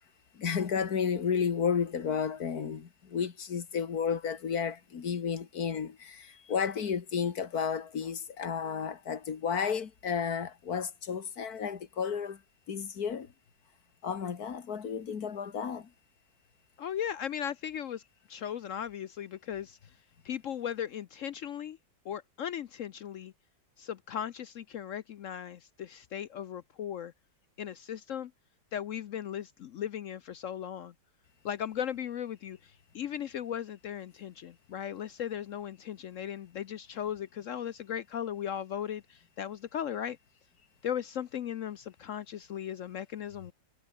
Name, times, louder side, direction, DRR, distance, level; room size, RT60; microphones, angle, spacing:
voice 1, 0.3-12.4 12.7-13.3 14.0-15.9, left 6 dB, 55° left, 2.0 m, -32 dB
voice 2, 16.8-18.0 18.3-19.8 20.2-21.8 22.0-23.3 23.8-27.1 27.6-28.3 28.7-30.9 31.4-40.2 40.8-43.5, left 9 dB, 70° left, 0.7 m, -37 dB
omnidirectional pair, 2.1 m